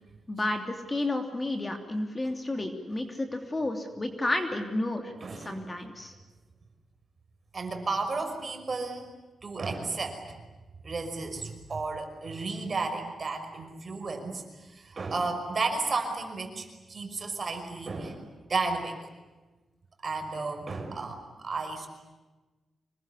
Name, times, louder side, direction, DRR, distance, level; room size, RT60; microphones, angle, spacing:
voice 1, 0.3-5.1 5.4-6.1, left 2 dB, 20° left, 5 dB, 3.0 m, -31 dB
voice 2, 5.2-5.7 7.5-9.1 9.4-10.4 10.8-19.0 20.0-21.9, right 3 dB, 35° right, 5 dB, 5.6 m, -33 dB
26.0 x 21.5 x 10.0 m, 1.2 s
wide cardioid pair, 120°, 0 cm